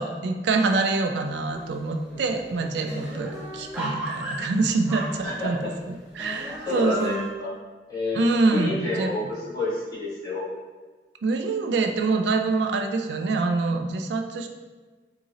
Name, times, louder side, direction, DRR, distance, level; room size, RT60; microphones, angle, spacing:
voice 1, 0.0-7.3 8.1-9.1 11.2-14.5, right 3 dB, 75° right, 4 dB, 0.3 m, -25 dB
sound 1, 1.5-1.9 2.2-2.3 2.6-5.7 6.2-7.3, right 1 dB, 10° right, 1.1 m, -35 dB
voice 2, 5.2-5.5 6.6-7.1 7.4-7.5 7.9-8.2 8.5-10.5, left 2 dB, 25° left, -10 dB, 1.4 m, -29 dB
3.7 x 2.6 x 2.9 m, 1.3 s
head